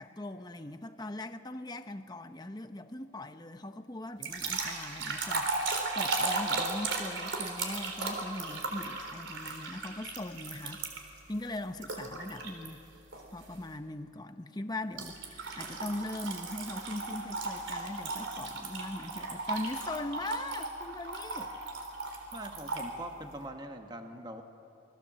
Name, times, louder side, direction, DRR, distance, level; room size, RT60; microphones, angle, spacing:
voice 1, 0.0-10.8 11.3-12.8 13.3-21.5, left 1 dB, 20° left, 8 dB, 0.8 m, -40 dB
sound 1, 4.2-11.2 11.8-12.7 13.1-13.4 15.0-22.9, right 3 dB, 70° right, 3.7 m, -36 dB
voice 2, 22.3-24.4, right 1 dB, 20° right, 5 dB, 1.3 m, -43 dB
27.5 x 21.5 x 7.5 m, 3.0 s
head